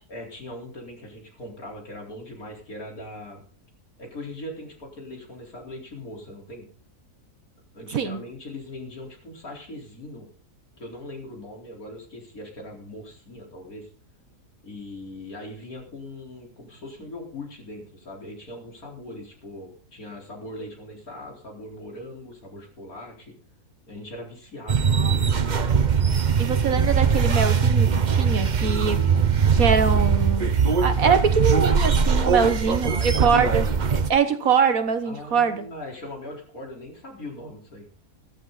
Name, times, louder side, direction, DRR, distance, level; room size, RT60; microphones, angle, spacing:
voice 1, 0.1-3.4 4.0-6.7 7.7-10.3 10.8-13.9 14.6-23.3 23.9-25.2 32.4-33.2 35.0-37.9, left 1 dB, 60° left, 4.7 m, -40 dB
voice 2, 7.9-8.2 26.4-29.0 29.5-30.5 30.8-35.7, right 6 dB, 60° right, 1.5 m, -23 dB
sound 1, 24.7-34.1, right 6 dB, 35° right, 0.8 m, -21 dB
14.5 x 14.0 x 4.1 m
omnidirectional pair, 1.7 m